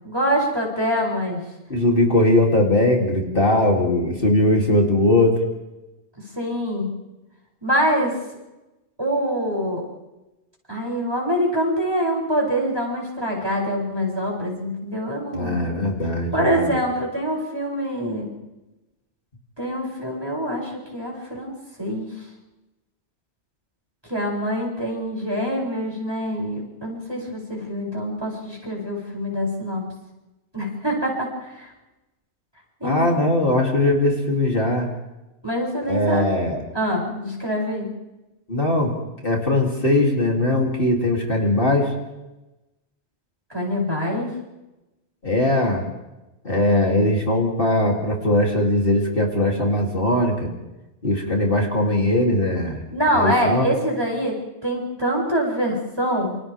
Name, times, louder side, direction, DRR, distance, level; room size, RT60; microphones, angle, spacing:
voice 1, 0.0-1.4 6.4-6.9 7.6-8.2 9.0-9.9 10.7-15.6 16.3-18.3 19.6-22.1 24.1-29.8 30.5-31.7 32.8-33.2 35.4-36.2 36.7-37.9 43.5-44.3 52.9-54.4 54.6-56.4, equal, 20° right, -3 dB, 7.8 m, -25 dB
voice 2, 1.7-5.4 15.3-16.7 32.8-34.9 35.9-36.6 38.5-38.9 39.2-41.9 45.2-45.8 46.4-50.5 51.0-52.8 53.1-53.7, left 1 dB, 55° left, -1 dB, 3.7 m, -20 dB
29.0 x 28.0 x 3.7 m, 1.0 s
omnidirectional pair, 1.1 m